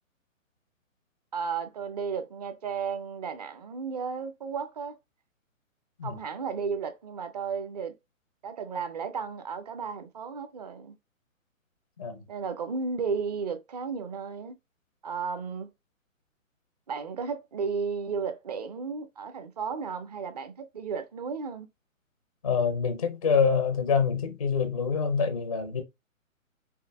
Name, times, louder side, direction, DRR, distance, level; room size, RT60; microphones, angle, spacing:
voice 1, 1.3-5.0 6.0-7.9 8.4-11.0 12.3-14.6 15.0-15.7 16.9-21.7, right 5 dB, 30° right, 0.5 m, -34 dB
voice 2, 22.4-25.8, left 6 dB, 25° left, 0.4 m, -26 dB
5.5 x 2.2 x 3.2 m
hypercardioid pair, 145°, 41 cm